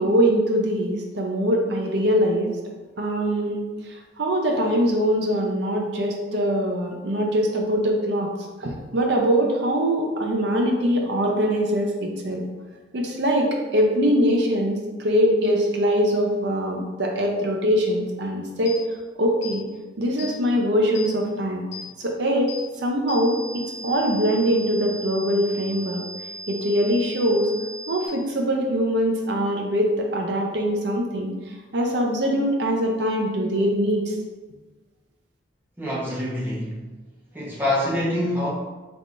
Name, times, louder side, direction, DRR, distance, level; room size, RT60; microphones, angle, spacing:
voice 1, 0.0-2.5 3.0-8.3 8.6-12.4 12.9-18.7 19.2-19.6 20.0-21.6 22.0-22.5 22.8-26.0 26.5-27.5 27.9-34.2, equal, 60° right, 0 dB, 0.6 m, -22 dB
sound 1, 18.7-18.8 19.4-19.6 20.2-20.4 21.0-21.1 21.7-21.9 22.5-22.6 23.1-28.1, equal, 65° left, 1.1 m, -37 dB
voice 2, 35.8-36.8 37.3-38.5, left 1 dB, 10° right, -6 dB, 0.8 m, -25 dB
3.5 x 3.3 x 2.6 m, 1.3 s
head